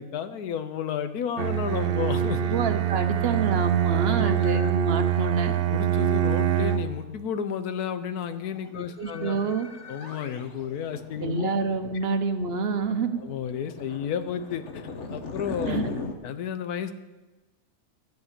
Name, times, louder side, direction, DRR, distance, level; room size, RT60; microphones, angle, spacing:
voice 1, 0.0-2.5 4.1-4.7 5.7-9.4 9.9-11.5 13.2-15.8 16.2-16.9, left 8 dB, 85° left, 11 dB, 1.3 m, -32 dB
Bowed string instrument, 1.4-7.0, right 10 dB, 75° right, 0.5 m, -24 dB
voice 2, 2.5-5.6 8.8-9.7 11.2-13.2 15.7-15.9, right 4 dB, 50° right, 8 dB, 0.9 m, -27 dB
sound 1, 8.3-16.1, left 4 dB, 55° left, 1.2 m, -39 dB
11.5 x 6.1 x 8.7 m, 1.2 s
omnidirectional pair, 1.6 m